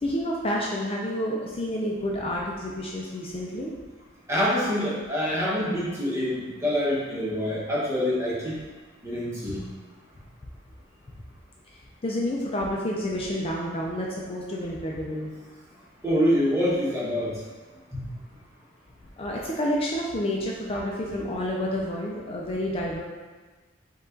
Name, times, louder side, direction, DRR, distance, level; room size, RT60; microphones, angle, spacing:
voice 1, 0.0-3.7 12.0-15.3 19.2-23.0, left 1 dB, 30° left, -3 dB, 0.4 m, -29 dB
voice 2, 4.3-8.6 9.0-9.6 16.0-17.3 17.9-18.0, equal, 15° right, -7 dB, 1.1 m, -25 dB
5.3 x 2.4 x 3.8 m, 1.3 s
head